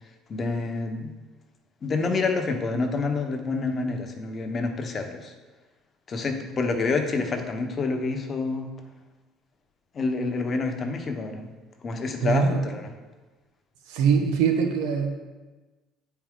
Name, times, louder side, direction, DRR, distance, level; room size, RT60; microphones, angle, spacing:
voice 1, 0.3-1.1 1.8-5.3 6.1-8.7 9.9-11.5 11.8-12.9, left 3 dB, 35° left, 5 dB, 1.0 m, -28 dB
voice 2, 12.2-12.6 13.9-15.2, right 6 dB, 85° right, 3 dB, 1.0 m, -23 dB
8.7 x 4.7 x 3.8 m, 1.2 s
cardioid pair, 105°, 0 cm